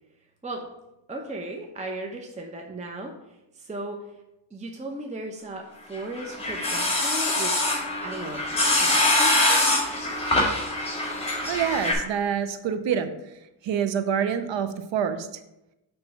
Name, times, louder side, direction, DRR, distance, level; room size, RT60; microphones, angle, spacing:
voice 1, 1.1-3.1 3.5-4.0 4.5-7.6 8.0-9.6, right 1 dB, 15° right, 1 dB, 0.8 m, -36 dB
sound 1, 6.0-11.9, left 2 dB, 10° left, 1.8 m, -24 dB
voice 2, 11.3-13.1 13.6-15.3, right 8 dB, 65° right, 10 dB, 0.8 m, -26 dB
6.0 x 3.4 x 5.7 m, 0.90 s
cardioid pair, 85°, 48 cm